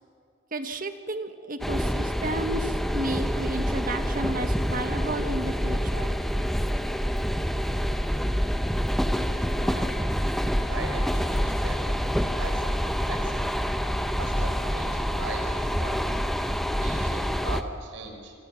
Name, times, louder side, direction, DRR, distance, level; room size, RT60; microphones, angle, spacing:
voice 1, 0.5-6.1, right 1 dB, 45° right, 8 dB, 1.5 m, -32 dB
sound 1, 1.6-17.6, equal, ahead, 0.9 m, -27 dB
voice 2, 9.6-10.1 10.7-13.4 14.2-18.3, right 2 dB, 80° right, 4 dB, 4.5 m, -40 dB
27.0 x 24.5 x 7.1 m, 2.4 s
head